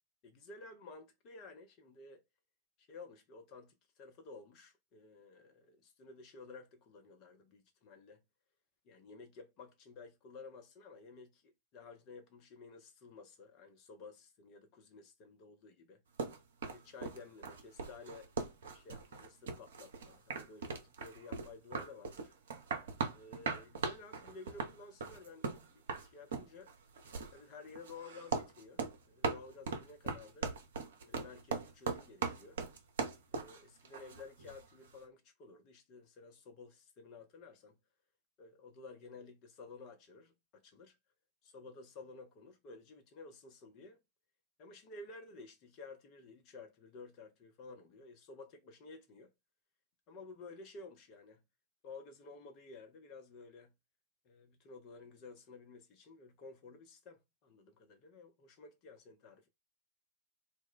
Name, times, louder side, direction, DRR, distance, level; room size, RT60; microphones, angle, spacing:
voice 1, 0.2-2.2 2.8-8.2 8.8-11.4 11.7-16.0 16.6-18.3 18.7-22.3 23.1-26.7 27.3-30.5 31.1-32.6 33.3-37.8 38.4-41.0 41.4-44.0 44.6-49.3 50.1-51.4 51.8-53.7 54.2-59.5, left 3 dB, 40° left, 0.7 m, -53 dB
sound 1, 16.2-34.6, right 5 dB, 60° right, 0.6 m, -40 dB
2.2 x 2.1 x 3.7 m
figure-of-eight pair, 90°, 0 cm